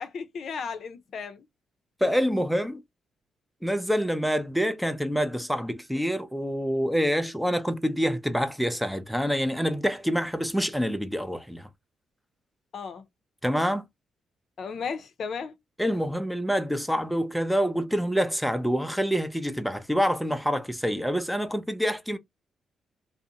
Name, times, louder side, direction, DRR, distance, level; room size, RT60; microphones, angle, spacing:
voice 1, 0.0-1.5 12.7-13.0 14.6-15.5, left 5 dB, 60° left, 0.5 m, -35 dB
voice 2, 2.0-2.8 3.6-11.7 13.4-13.9 15.8-22.2, equal, ahead, 0.4 m, -26 dB
2.5 x 2.0 x 2.7 m
cardioid pair, 80°, 0 cm